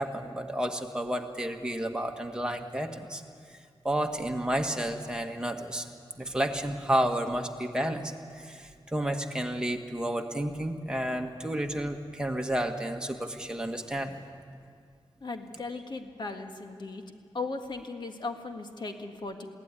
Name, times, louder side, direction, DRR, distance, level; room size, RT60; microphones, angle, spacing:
voice 1, 0.0-3.2 3.8-5.9 6.1-14.2, right 1 dB, 10° right, 3 dB, 1.7 m, -31 dB
voice 2, 15.2-17.0 17.3-19.5, left 3 dB, 50° left, 4 dB, 1.9 m, -37 dB
22.0 x 16.5 x 9.8 m, 2.2 s
wide cardioid pair, 115°, 10 cm